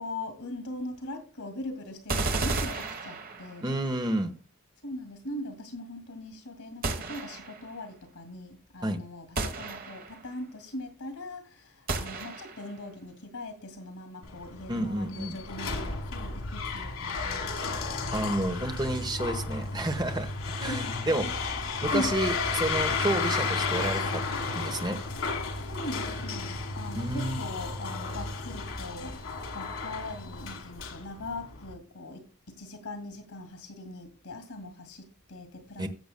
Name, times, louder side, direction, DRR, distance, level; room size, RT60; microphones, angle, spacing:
voice 1, 0.0-3.6 4.8-18.3 20.7-21.3 21.9-22.2 25.6-35.9, left 1 dB, 90° left, 2.2 m, -40 dB
sound 1, 2.1-3.7 6.8-7.7 9.4-10.3 11.9-12.7, right 3 dB, 40° right, 1.2 m, -33 dB
voice 2, 3.6-4.3 8.8-9.0 14.7-15.4 18.1-20.3 20.6-21.3 21.8-24.2 24.5-25.0 26.9-27.4 35.8-35.9, right 1 dB, 20° right, 1.1 m, -30 dB
sound 2, 14.2-31.7, left 4 dB, 65° left, 1.7 m, -33 dB
16.0 x 7.8 x 2.2 m
head